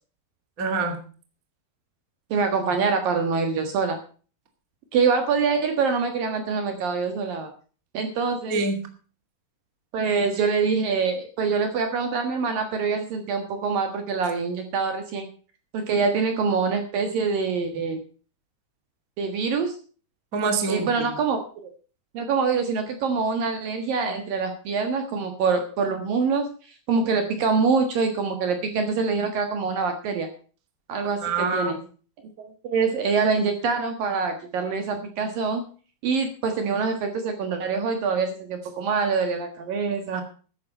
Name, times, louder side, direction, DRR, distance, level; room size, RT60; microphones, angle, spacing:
voice 1, 0.6-1.0 8.5-8.8 20.3-20.9 31.2-31.8 40.1-40.2, right 4 dB, 30° right, 5 dB, 1.6 m, -25 dB
voice 2, 2.3-4.0 4.9-7.5 7.9-8.6 9.9-15.3 15.7-18.0 19.2-19.7 20.7-21.7 22.1-26.5 26.9-30.3 30.9-31.8 32.4-35.6 36.0-40.2, right 5 dB, 60° right, 6 dB, 2.7 m, -25 dB
13.0 x 10.5 x 5.5 m, 0.39 s
omnidirectional pair, 5.5 m